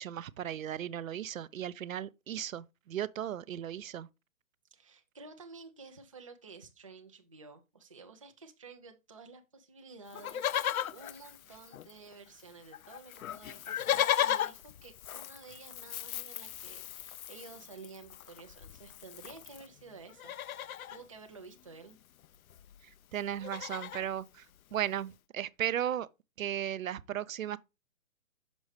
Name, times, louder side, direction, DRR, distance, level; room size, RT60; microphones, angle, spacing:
voice 1, 0.0-4.1 23.1-24.5 24.7-26.1 26.4-27.6, right 10 dB, 70° right, 0.5 m, -36 dB
voice 2, 4.7-20.4 20.9-22.0, right 4 dB, 25° right, 0.4 m, -52 dB
Livestock farm animals working animals, 10.1-12.1 12.4-12.5 12.7-19.7 20.1-21.0 22.2-22.3 22.5-22.8 23.1-24.1 24.7-24.8, left 11 dB, 80° left, 0.5 m, -36 dB
6.2 x 5.3 x 3.1 m
hypercardioid pair, 160°, 42 cm